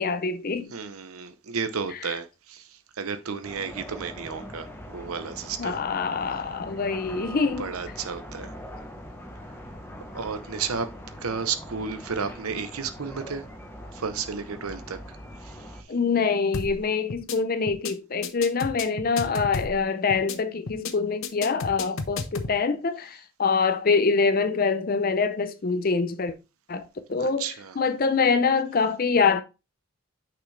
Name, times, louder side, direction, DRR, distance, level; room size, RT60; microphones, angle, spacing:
voice 1, 0.0-0.7 5.6-7.7 15.9-26.3 26.7-26.8 27.1-27.5 27.8-29.4, left 5 dB, 45° left, 0.5 m, -25 dB
voice 2, 0.7-5.8 7.1-8.5 10.1-10.9 11.2-13.5 13.9-15.9 21.9-22.0 27.2-27.8, right 5 dB, 85° right, 0.8 m, -33 dB
sound 1, 3.4-15.8, equal, 10° left, 1.0 m, -42 dB
sound 2, 16.5-16.8 17.1-17.4 17.7-17.9 18.2-19.8 20.1-20.4 20.7-20.9 21.2-22.5, left 4 dB, 70° left, 0.8 m, -32 dB
6.3 x 5.9 x 3.2 m
head